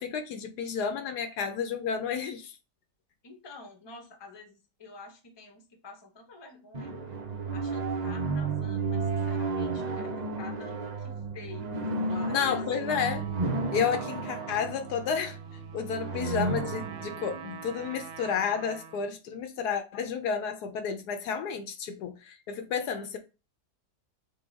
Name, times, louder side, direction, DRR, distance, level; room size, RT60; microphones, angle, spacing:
voice 1, 0.0-2.5 12.3-13.2 13.7-15.4 15.7-23.2, left 7 dB, 75° left, 1.2 m, -31 dB
voice 2, 3.2-7.0 7.5-11.8 12.1-13.0, left 3 dB, 25° left, 0.6 m, -48 dB
sound 1, 6.7-18.4, right 3 dB, 70° right, 0.4 m, -33 dB
Trumpet, 12.8-19.1, right 6 dB, 85° right, 1.4 m, -45 dB
5.5 x 2.3 x 3.8 m
omnidirectional pair, 1.7 m